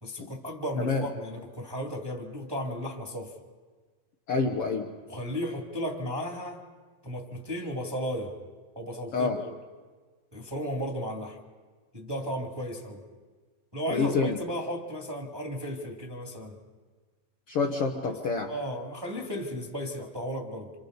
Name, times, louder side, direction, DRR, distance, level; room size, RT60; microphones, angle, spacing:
voice 1, 0.0-3.4 5.0-6.6 7.0-8.4 8.8-9.3 10.3-11.4 11.9-13.0 13.7-16.6 18.0-18.1 18.5-20.7, equal, 10° right, 1 dB, 1.8 m, -34 dB
voice 2, 4.3-4.9 9.1-9.4 13.9-14.4 17.5-18.5, left 4 dB, 60° left, 1 dB, 1.6 m, -27 dB
29.5 x 27.5 x 4.0 m, 1.4 s
omnidirectional pair, 3.8 m